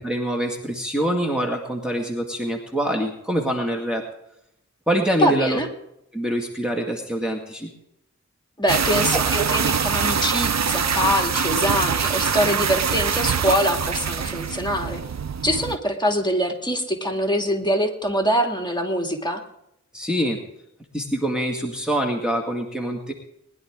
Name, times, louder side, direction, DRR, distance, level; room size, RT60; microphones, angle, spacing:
voice 1, 0.0-4.0 4.9-5.6 6.1-7.7 9.4-9.5 19.9-20.4 20.9-23.1, right 1 dB, 5° right, 0 dB, 2.1 m, -25 dB
voice 2, 5.2-5.7 8.6-15.0 15.4-19.4, equal, 15° left, 2 dB, 2.5 m, -23 dB
sound 1, 8.7-15.8, right 6 dB, 65° right, 0.6 m, -24 dB
20.5 x 11.0 x 3.7 m, 0.80 s
wide cardioid pair, 50°, 29 cm